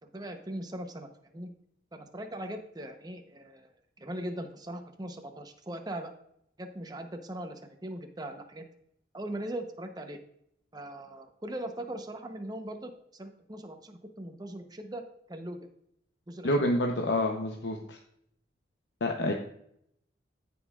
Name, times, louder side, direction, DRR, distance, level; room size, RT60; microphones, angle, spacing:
voice 1, 0.0-1.5 1.9-3.7 4.0-6.1 6.6-8.6 9.1-10.2 10.7-15.0 15.3-15.7 16.3-16.8, right 1 dB, 20° right, 5 dB, 0.8 m, -40 dB
voice 2, 16.4-18.0 19.0-19.3, left 1 dB, 75° left, 2 dB, 0.8 m, -28 dB
15.0 x 5.4 x 2.4 m, 0.73 s
head